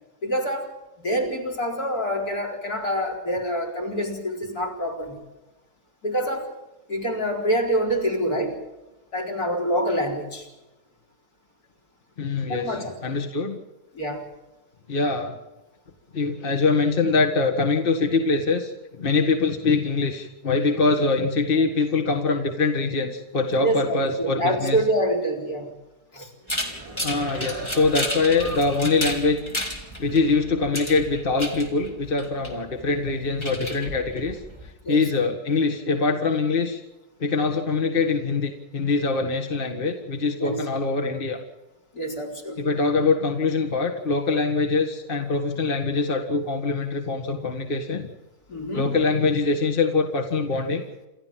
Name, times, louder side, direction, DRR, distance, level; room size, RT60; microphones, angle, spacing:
voice 1, 0.2-0.7 1.0-5.2 6.0-6.5 6.9-8.6 9.1-10.5 12.5-12.9 13.9-14.2 23.6-25.7 26.1-26.3 34.8-35.0 40.4-40.6 41.9-42.6 48.5-48.9, equal, 65° left, 5 dB, 4.9 m, -26 dB
voice 2, 12.2-13.6 14.9-15.3 16.1-18.7 19.0-24.8 27.0-29.4 30.0-36.8 37.2-41.4 42.6-48.1 48.7-50.8, left 4 dB, 35° left, 4 dB, 1.9 m, -23 dB
sound 1, 26.4-29.2 29.6-29.7, right 4 dB, 80° right, 3.3 m, -39 dB
sound 2, 26.5-34.7, equal, 15° left, 3.6 m, -33 dB
28.5 x 13.5 x 7.5 m, 1.0 s
omnidirectional pair, 1.7 m